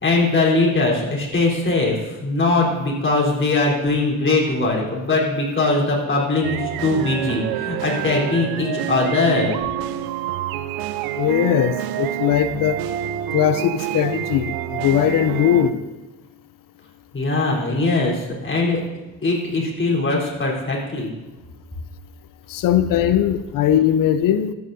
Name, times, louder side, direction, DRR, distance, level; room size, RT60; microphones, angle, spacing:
voice 1, 0.0-9.5 17.1-18.8 19.2-21.1, left 3 dB, 30° left, -3 dB, 3.8 m, -21 dB
sound 1, 6.4-15.7, right 11 dB, 75° right, 0.6 m, -27 dB
voice 2, 11.2-12.8 13.3-15.8 22.5-24.5, left 10 dB, 60° left, 12 dB, 0.6 m, -19 dB
13.5 x 9.6 x 2.7 m, 1.1 s
hypercardioid pair, 55°, 37 cm